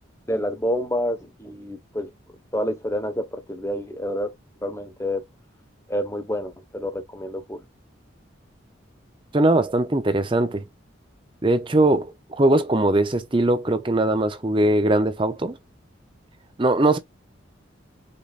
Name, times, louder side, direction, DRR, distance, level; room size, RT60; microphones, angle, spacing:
voice 1, 0.3-2.1 2.5-4.3 4.6-5.2 5.9-7.6, equal, 15° left, 1.1 m, -28 dB
voice 2, 9.3-10.6 11.4-15.6 16.6-17.0, right 2 dB, 25° right, 0.6 m, -20 dB
5.2 x 4.0 x 2.4 m
head